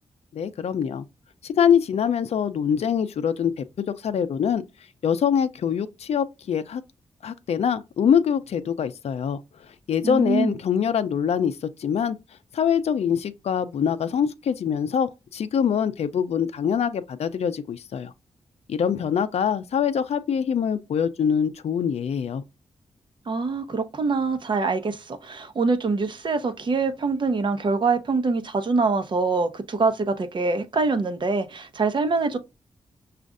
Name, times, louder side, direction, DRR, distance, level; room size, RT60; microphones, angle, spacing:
voice 1, 0.3-1.0 1.4-4.6 5.0-6.8 7.2-9.4 9.9-12.2 12.5-18.1 18.7-22.4, left 8 dB, 70° left, 0.5 m, -24 dB
voice 2, 10.0-10.6 23.3-32.4, right 4 dB, 45° right, 0.8 m, -24 dB
6.2 x 2.5 x 2.5 m
wide cardioid pair, 95°, 11 cm